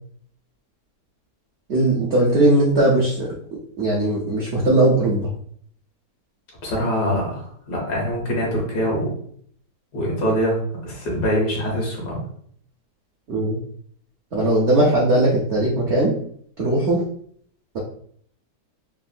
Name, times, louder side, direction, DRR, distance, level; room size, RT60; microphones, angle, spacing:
voice 1, 1.7-3.3 3.8-5.3 13.3-13.6 14.3-16.1 16.6-17.0, right 1 dB, 70° right, -4 dB, 0.6 m, -19 dB
voice 2, 6.6-9.1 9.9-12.2, equal, 70° left, -2 dB, 1.6 m, -24 dB
3.5 x 2.1 x 2.4 m, 0.62 s
omnidirectional pair, 1.8 m